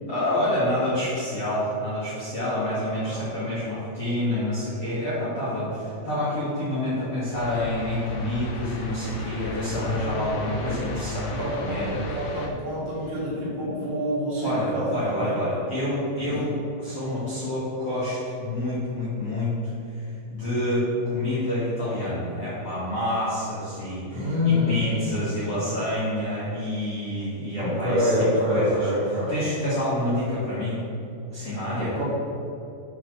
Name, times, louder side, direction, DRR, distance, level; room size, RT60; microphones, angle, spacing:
voice 1, 0.1-12.0 14.4-28.1 28.5-28.9 29.3-30.8 31.3-31.9, left 1 dB, 45° left, -12 dB, 2.0 m, -28 dB
voice 2, 3.0-3.3 9.8-10.9 11.2-15.4 16.3-16.4 24.1-25.2 27.6-29.4 31.8-32.0, left 1 dB, 60° right, -7 dB, 3.6 m, -27 dB
sound 1, 7.3-12.5, left 2 dB, 75° left, 2.5 m, -36 dB
8.7 x 4.0 x 6.3 m, 2.8 s
omnidirectional pair, 5.6 m